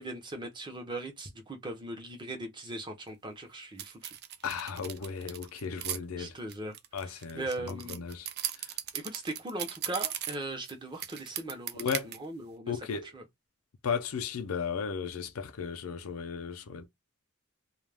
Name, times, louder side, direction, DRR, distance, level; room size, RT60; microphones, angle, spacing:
voice 1, 0.0-4.1 6.2-6.8 7.0-8.1 8.9-13.2, right 2 dB, 20° right, 0.7 m, -39 dB
sound 1, 3.8-6.0 6.5-10.7 11.0-12.2, right 11 dB, 50° right, 0.4 m, -37 dB
voice 2, 4.4-6.4 6.9-8.3 8.6-8.7 11.7-12.1 12.7-13.1 13.8-16.9, left 6 dB, 90° left, 0.5 m, -35 dB
2.4 x 2.2 x 3.3 m
head